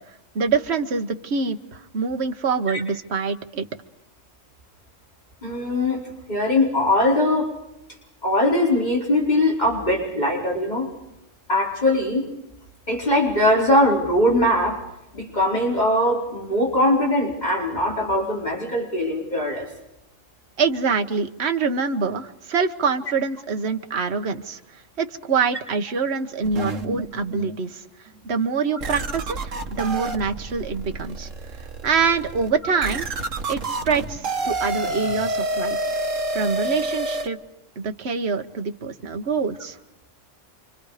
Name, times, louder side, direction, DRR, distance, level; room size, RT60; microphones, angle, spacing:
voice 1, 0.3-3.7 20.6-27.8 28.2-31.3 31.8-33.1 33.5-36.1 36.3-37.4 37.8-39.8, right 5 dB, 55° right, 6 dB, 1.5 m, -25 dB
voice 2, 5.4-7.5 8.2-10.9 11.5-12.3 12.9-14.8 15.1-19.7, left 1 dB, 35° left, -2 dB, 4.9 m, -21 dB
sound 1, 26.4-27.6 28.2-28.3 28.8-37.3, right 2 dB, 75° right, 1.9 m, -29 dB
29.5 x 25.0 x 5.0 m, 0.88 s
omnidirectional pair, 1.3 m